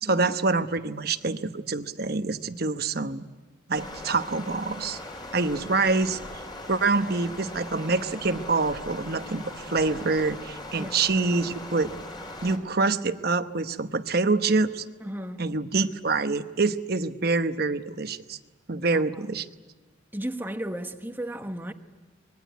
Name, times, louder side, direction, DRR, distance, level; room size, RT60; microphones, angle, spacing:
voice 1, 0.0-3.2 3.7-5.0 5.3-6.2 6.7-11.9 12.4-14.8 15.4-18.4 18.7-19.4, right 3 dB, 55° right, 1.0 m, -26 dB
Stream, 3.7-12.6, left 1 dB, 25° left, 3.8 m, -40 dB
voice 2, 15.0-15.4 18.7-19.2 20.1-21.7, right 1 dB, 10° right, 1.2 m, -35 dB
25.0 x 21.0 x 9.2 m
head